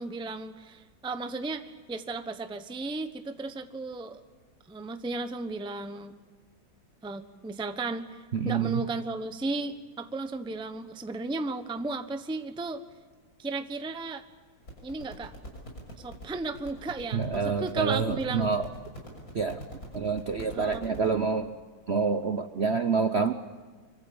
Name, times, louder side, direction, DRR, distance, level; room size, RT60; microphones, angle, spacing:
voice 1, 0.0-4.2 4.7-6.2 7.0-12.8 13.4-14.2 14.8-15.3 16.0-18.5 20.5-20.8, right 3 dB, 5° right, 8 dB, 0.7 m, -35 dB
voice 2, 8.3-8.8 17.1-18.6 19.3-19.6 19.9-21.5 21.9-23.3, right 5 dB, 45° right, 8 dB, 0.8 m, -27 dB
sound 1, 14.6-21.1, equal, 45° left, 7.0 m, -45 dB
25.5 x 24.0 x 8.7 m, 1.4 s
omnidirectional pair, 2.2 m